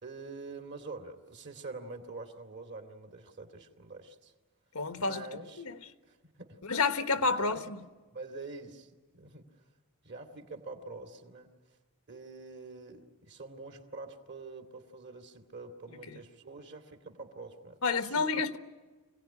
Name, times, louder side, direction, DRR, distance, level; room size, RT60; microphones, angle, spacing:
voice 1, 0.0-4.3 5.0-6.6 7.1-7.7 8.1-9.5 10.0-11.5 12.1-18.3, right 3 dB, 50° right, 2.3 m, -46 dB
voice 2, 4.7-5.2 5.6-5.8 6.6-7.8 16.1-16.2 17.8-18.6, left 4 dB, 85° left, 1.3 m, -29 dB
25.5 x 17.5 x 10.0 m
head